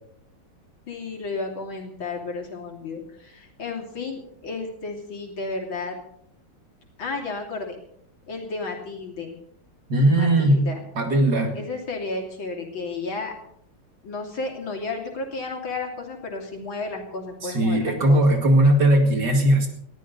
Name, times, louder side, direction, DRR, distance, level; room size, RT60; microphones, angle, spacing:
voice 1, 0.9-6.0 7.0-7.8 8.3-9.4 10.2-10.8 11.5-13.3 14.0-18.2, left 3 dB, 60° left, 0 dB, 3.8 m, -32 dB
voice 2, 9.9-11.5 17.4-19.7, right 1 dB, 50° right, 4 dB, 2.7 m, -19 dB
21.0 x 14.0 x 4.1 m, 0.69 s
omnidirectional pair, 2.4 m